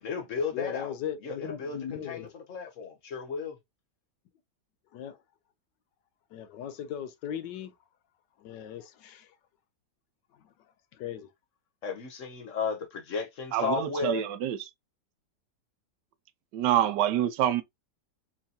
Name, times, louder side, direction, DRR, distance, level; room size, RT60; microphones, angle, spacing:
voice 1, 0.0-1.0 1.2-3.6 11.8-14.2, left 5 dB, 55° left, 1.0 m, -34 dB
voice 2, 0.5-2.3 4.9-5.2 6.3-7.7 8.4-9.3 10.4-10.5 10.9-11.3, left 9 dB, 80° left, 1.3 m, -38 dB
voice 3, 13.5-14.6 16.5-17.6, right 11 dB, 80° right, 1.2 m, -26 dB
4.5 x 2.6 x 2.8 m
omnidirectional pair, 1.9 m